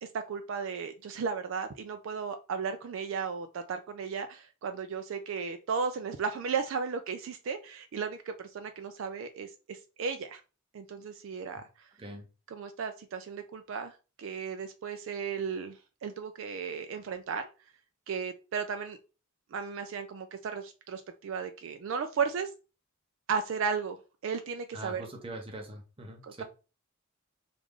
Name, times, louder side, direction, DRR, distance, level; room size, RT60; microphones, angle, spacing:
voice 1, 0.0-10.4 10.7-11.9 12.5-17.5 18.1-19.0 19.5-22.5 23.3-24.0 24.2-25.0 26.2-26.4, right 6 dB, 60° right, 8 dB, 0.3 m, -35 dB
voice 2, 24.7-26.4, right 1 dB, 25° right, 2 dB, 0.6 m, -42 dB
3.2 x 2.4 x 3.6 m, 0.33 s
head